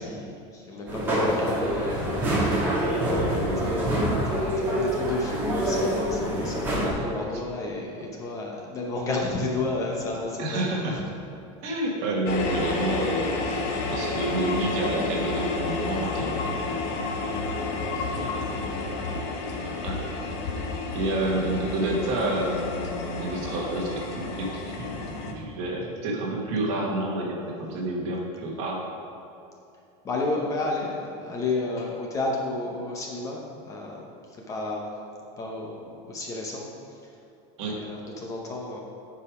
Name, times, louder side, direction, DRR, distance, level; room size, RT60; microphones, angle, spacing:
voice 1, 0.0-2.7 3.3-10.9 30.0-34.0 34.5-34.9 35.4-36.7 37.6-38.8, left 2 dB, 20° left, -1 dB, 0.7 m, -32 dB
sound 1, 0.9-6.9, equal, 15° right, 1.5 m, -26 dB
voice 2, 3.3-3.9 10.4-11.0 11.6-13.6 13.9-16.6 18.1-18.3 19.8-20.0 20.9-28.8 37.6-37.8, right 1 dB, 45° right, -2 dB, 1.5 m, -29 dB
sound 2, 12.3-25.3, left 3 dB, 45° left, 1.0 m, -31 dB
9.9 x 5.0 x 4.9 m, 2.7 s
cardioid pair, 180°, 15 cm